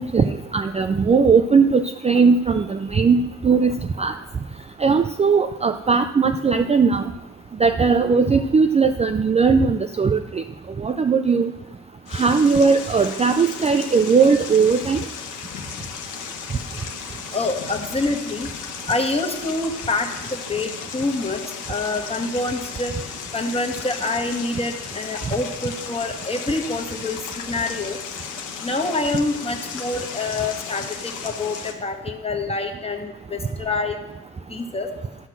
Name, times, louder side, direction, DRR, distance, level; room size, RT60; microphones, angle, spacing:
voice 1, 0.0-4.2 4.8-7.0 7.6-10.4 10.8-11.5 12.1-15.0, right 5 dB, 20° right, 7 dB, 0.4 m, -18 dB
sound 1, 12.1-31.7, left 7 dB, 85° left, 1.2 m, -35 dB
voice 2, 17.3-18.5 18.9-21.4 21.7-22.9 23.3-28.0 28.6-34.0 34.5-34.9, left 2 dB, 20° left, 2 dB, 1.6 m, -26 dB
12.5 x 5.9 x 6.1 m, 0.97 s
cardioid pair, 90°, 30 cm